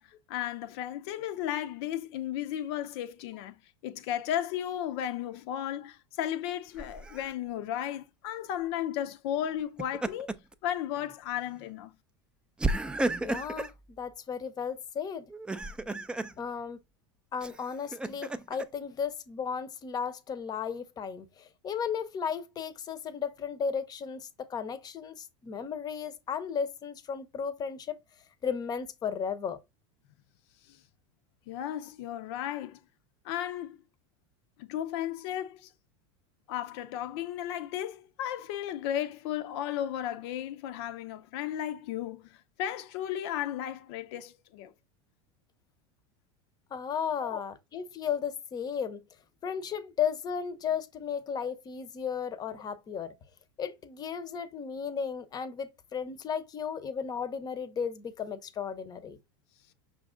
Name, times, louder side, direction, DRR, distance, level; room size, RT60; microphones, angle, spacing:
voice 1, 0.0-10.3 10.6-11.9 30.7-30.8 31.5-32.8 33.2-33.8 34.6-35.7 36.5-44.7 47.2-47.4, left 11 dB, 65° left, 0.5 m, -34 dB
Laughter, 6.8-7.3 9.6-10.5 11.0-11.1 12.6-13.8 15.3-16.3 17.4-18.7, right 2 dB, 5° right, 0.3 m, -33 dB
voice 2, 13.2-13.7 14.0-15.3 16.4-16.8 17.3-28.0 28.4-29.6 46.7-49.0 49.4-53.1 53.6-59.2, left 7 dB, 25° left, 0.7 m, -34 dB
5.8 x 2.5 x 3.7 m
supercardioid pair, 115°, 14 cm